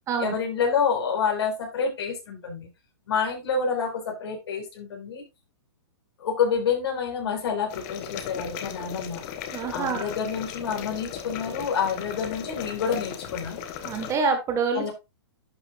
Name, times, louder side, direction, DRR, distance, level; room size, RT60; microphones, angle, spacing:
voice 1, 0.2-2.7 3.1-5.2 6.2-9.2 9.7-13.6 14.7-14.9, left 6 dB, 70° left, 0 dB, 4.8 m, -28 dB
sound 1, 7.7-14.2, left 9 dB, 40° left, 1.4 m, -37 dB
voice 2, 9.5-10.1 13.8-14.9, right 5 dB, 20° right, 5 dB, 1.7 m, -26 dB
11.5 x 5.9 x 2.5 m, 0.24 s
hypercardioid pair, 145°, 14 cm